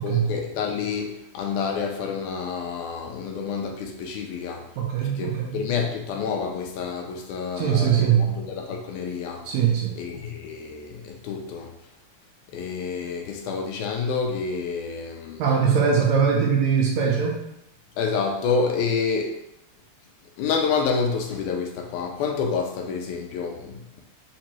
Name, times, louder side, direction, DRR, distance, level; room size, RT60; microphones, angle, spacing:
voice 1, 0.0-4.6 5.0-9.5 10.0-11.7 12.5-15.4 18.0-19.4 20.4-24.0, left 5 dB, 85° left, 2 dB, 2.0 m, -28 dB
voice 2, 4.8-5.6 7.6-8.3 9.5-10.0 15.4-17.4, right 7 dB, 75° right, -1 dB, 1.8 m, -21 dB
5.3 x 2.6 x 2.9 m, 0.81 s
omnidirectional pair, 3.5 m